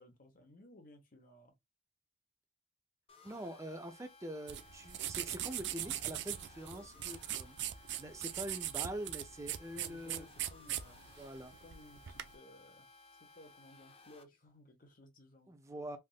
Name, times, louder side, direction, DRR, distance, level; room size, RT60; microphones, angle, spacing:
voice 1, 0.0-1.5 6.7-7.3 9.7-11.0 11.6-12.9 13.2-15.5, left 1 dB, 50° left, 1.0 m, -59 dB
sound 1, 3.1-14.2, left 3 dB, 35° left, 0.5 m, -60 dB
voice 2, 3.2-7.6 8.0-10.3 11.2-11.5 15.5-16.0, right 1 dB, 15° right, 0.6 m, -44 dB
sound 2, 4.5-12.3, right 12 dB, 70° right, 0.4 m, -40 dB
3.5 x 2.6 x 2.3 m
head